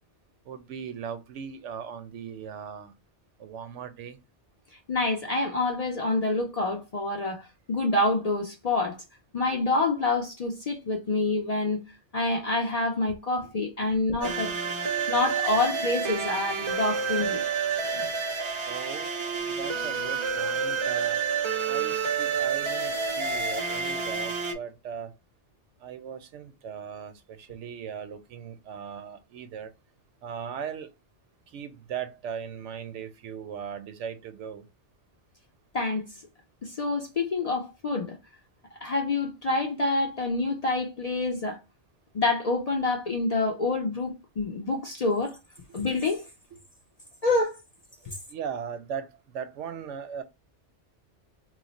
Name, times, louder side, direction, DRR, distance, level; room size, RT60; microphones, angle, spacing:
voice 1, 0.5-2.9 3.4-4.2 17.9-18.1 18.7-19.1 19.5-21.2 21.7-25.1 25.8-29.7 30.2-30.9 31.5-34.6 48.3-50.2, right 7 dB, 90° right, 0.9 m, -38 dB
voice 2, 4.9-9.0 9.3-11.8 12.1-14.5 15.1-17.4 35.7-36.1 36.6-38.2 38.8-41.6 42.1-45.4 45.7-46.3 47.2-47.6 48.1-48.2, left 2 dB, 50° left, 0.4 m, -27 dB
sound 1, 14.2-24.5, right 5 dB, 40° right, 0.4 m, -29 dB
3.1 x 2.0 x 4.0 m
omnidirectional pair, 1.2 m